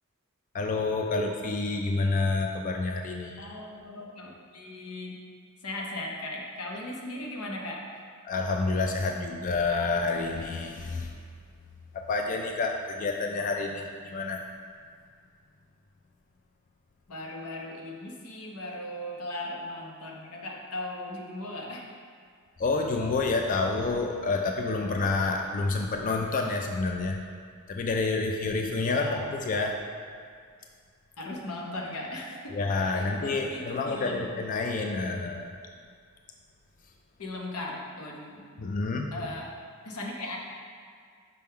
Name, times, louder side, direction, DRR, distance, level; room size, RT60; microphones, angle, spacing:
voice 1, 0.5-3.5 8.2-11.1 11.9-14.4 22.6-27.2 27.7-29.8 32.5-35.5 38.6-39.1, left 3 dB, 35° left, 2 dB, 0.3 m, -28 dB
voice 2, 3.4-5.2 5.6-8.0 17.1-21.9 29.0-29.3 31.2-32.5 32.9-34.3 37.2-38.4 39.1-39.6 39.8-40.4, left 1 dB, 90° left, 0 dB, 0.9 m, -38 dB
5.2 x 3.6 x 5.5 m, 2.1 s
head